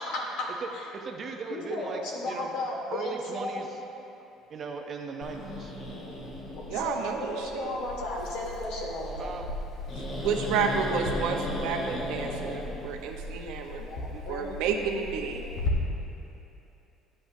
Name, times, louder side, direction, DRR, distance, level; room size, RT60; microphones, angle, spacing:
voice 1, 0.0-0.9 1.5-3.7 6.7-9.3 13.9-14.5 15.2-15.4, left 1 dB, 75° left, -2 dB, 1.6 m, -34 dB
voice 2, 0.9-2.0 2.3-2.5 2.9-3.7 4.5-5.7 9.2-9.5, right 4 dB, 30° right, 3 dB, 0.5 m, -37 dB
Growling, 5.2-15.7, left 1 dB, 35° left, 1.0 m, -36 dB
voice 3, 6.7-7.7 10.0-15.4, right 6 dB, 75° right, 3 dB, 0.8 m, -31 dB
11.5 x 8.5 x 2.6 m, 2.8 s
cardioid pair, 175°, 0 cm